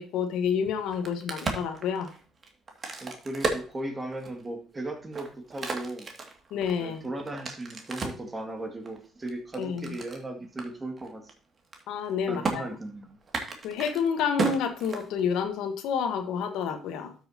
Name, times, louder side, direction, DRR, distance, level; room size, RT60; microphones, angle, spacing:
voice 1, 0.0-2.1 6.5-7.0 9.6-10.0 11.9-12.6 13.6-17.1, left 6 dB, 75° left, 7 dB, 1.3 m, -29 dB
Crack, 0.8-4.5 5.0-8.3 8.9-10.2 10.6-10.7 11.0-11.3 11.6-12.1 12.4-12.6 13.2-15.5, right 3 dB, 40° right, 2.2 m, -34 dB
voice 2, 3.0-6.1 6.8-11.3 12.3-13.2, right 1 dB, 25° right, 5 dB, 2.2 m, -37 dB
12.5 x 6.5 x 2.8 m, 0.38 s
hypercardioid pair, 60°, 0 cm